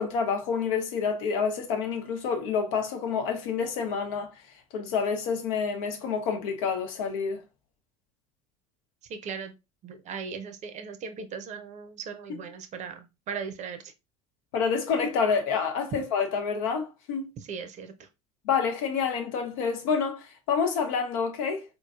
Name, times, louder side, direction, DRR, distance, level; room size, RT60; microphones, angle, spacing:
voice 1, 0.0-4.3 4.7-7.4 14.5-17.3 18.4-21.6, left 6 dB, 70° left, 0.8 m, -28 dB
voice 2, 9.1-9.5 9.8-13.8 17.5-17.9, right 6 dB, 40° right, 0.7 m, -38 dB
3.8 x 3.1 x 2.4 m
hypercardioid pair, 75°, 18 cm